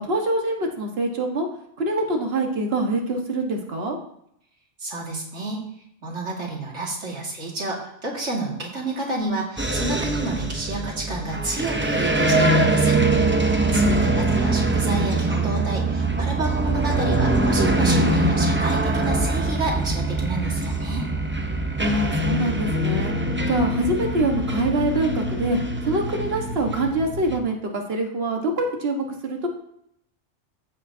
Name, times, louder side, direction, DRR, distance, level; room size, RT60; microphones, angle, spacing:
voice 1, 0.0-1.5 1.8-4.0 13.7-14.1 21.8-23.1 23.5-25.6 25.8-29.5, right 2 dB, 55° right, 2 dB, 1.6 m, -25 dB
voice 2, 4.8-5.6 6.0-13.0 13.4-21.1, right 2 dB, 70° right, -2 dB, 2.4 m, -29 dB
sound 1, 9.6-27.4, right 2 dB, 15° right, 0.6 m, -23 dB
15.0 x 7.3 x 2.7 m, 0.73 s
omnidirectional pair, 1.3 m